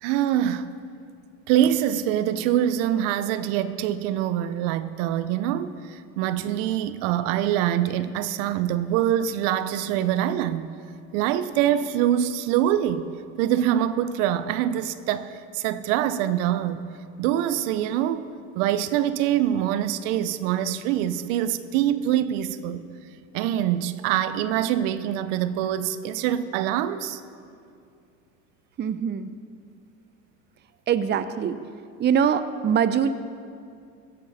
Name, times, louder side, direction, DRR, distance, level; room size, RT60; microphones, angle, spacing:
voice 1, 0.0-0.7 1.5-10.7 11.1-13.1 13.4-16.8 17.2-18.3 18.5-22.9 23.3-27.2, right 11 dB, 75° right, 0.7 m, -24 dB
voice 2, 28.8-29.3 30.9-31.6 32.0-33.1, right 8 dB, 30° right, 0.6 m, -23 dB
16.0 x 9.9 x 4.1 m
supercardioid pair, 90°, 38 cm